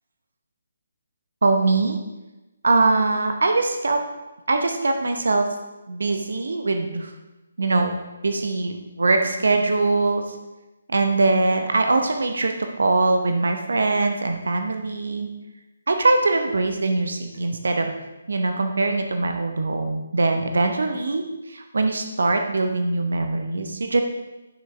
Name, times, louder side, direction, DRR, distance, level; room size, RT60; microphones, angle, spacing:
voice 1, 1.4-2.0 2.6-4.0 4.5-5.5 5.9-7.1 7.6-8.0 8.2-10.4 10.9-15.3 15.9-17.9 18.3-24.0, right 3 dB, 60° right, 5 dB, 0.8 m, -22 dB
10.5 x 6.0 x 3.3 m, 1.1 s
figure-of-eight pair, 140°, 0 cm